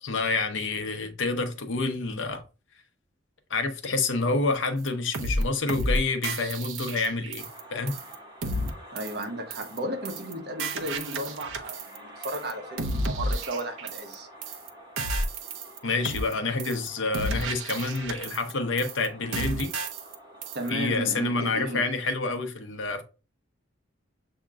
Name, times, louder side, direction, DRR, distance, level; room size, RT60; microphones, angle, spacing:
voice 1, 0.0-2.4 3.5-8.0 15.8-19.7 20.7-23.0, left 3 dB, 75° left, 0.8 m, -28 dB
sound 1, 4.9-5.0 5.1-5.4 5.7-6.0 6.2-7.6 7.9-8.1 8.4-8.7 9.0-9.2 9.5-9.8 10.0-10.3 10.6-12.0 12.2-12.5 12.8-14.1 14.4-14.7 15.0-15.8 16.0-16.3 16.6-16.9 17.1-18.5 18.8-19.1 19.3-20.1 20.4-20.7, right 1 dB, 85° right, 0.7 m, -31 dB
sound 2, 7.4-21.8, equal, 25° right, 1.4 m, -48 dB
voice 2, 8.9-14.3 20.5-21.8, right 1 dB, 55° right, 1.1 m, -34 dB
7.1 x 2.9 x 2.4 m
head